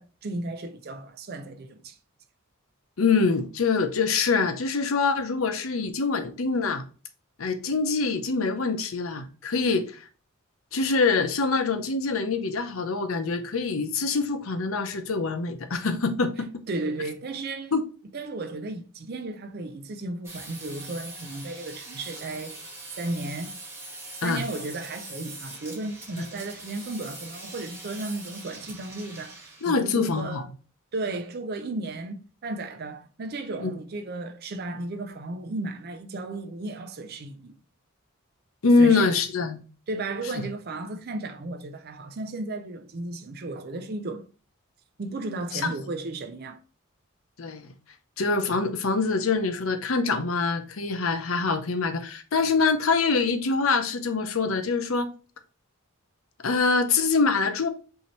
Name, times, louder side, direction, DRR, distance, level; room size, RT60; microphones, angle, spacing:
voice 1, 0.0-2.0 16.7-17.7 18.1-22.6 23.0-23.6 24.2-30.5 30.9-37.6 38.8-39.2 39.9-44.3 45.0-46.6, right 2 dB, 45° right, 0.5 m, -34 dB
voice 2, 3.0-6.8 7.4-10.0 10.7-16.5 17.7-17.8 24.2-24.4 26.1-26.2 29.6-30.4 33.6-33.7 38.6-39.6 40.4-40.5 45.5-45.7 47.4-47.7 48.2-55.1 56.4-57.7, left 4 dB, 75° left, 0.7 m, -24 dB
sound 1, 20.2-29.7, right 2 dB, 10° right, 1.3 m, -42 dB
5.5 x 2.8 x 3.1 m
head